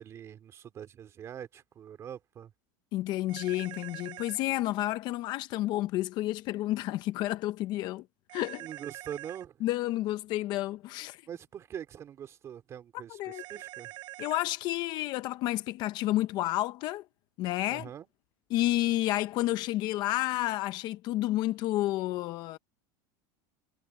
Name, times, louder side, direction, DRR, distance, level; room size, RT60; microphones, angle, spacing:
voice 1, 0.0-2.5 8.6-9.7 11.3-13.9 17.7-18.1, right 9 dB, 25° right, 2.8 m, -43 dB
voice 2, 2.9-8.0 8.3-8.7 9.6-11.2 13.1-13.4 14.2-17.0 17.4-17.9 18.5-22.6, left 16 dB, 40° left, 0.7 m, -30 dB
sound 1, 3.3-4.4 8.3-9.4 13.3-14.5, right 19 dB, 45° right, 3.9 m, -44 dB
supercardioid pair, 160°, 11 cm